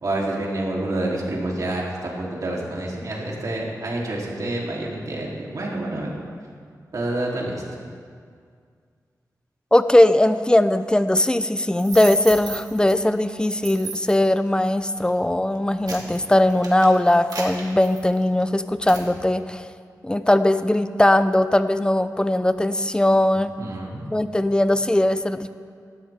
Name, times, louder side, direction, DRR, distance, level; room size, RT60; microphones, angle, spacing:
voice 1, 0.0-1.8 2.2-6.1 6.9-7.6 23.3-24.0, right 1 dB, 60° right, -4 dB, 3.5 m, -28 dB
voice 2, 9.7-19.6 20.0-23.5 24.1-25.5, left 1 dB, 15° left, 11 dB, 0.6 m, -19 dB
sound 1, 11.8-12.9 13.5-14.3 14.9-15.1 15.5-18.4 18.9-19.1, right 4 dB, 85° right, 2.4 m, -35 dB
18.5 x 13.0 x 3.7 m, 2.1 s
wide cardioid pair, 75°, 7 cm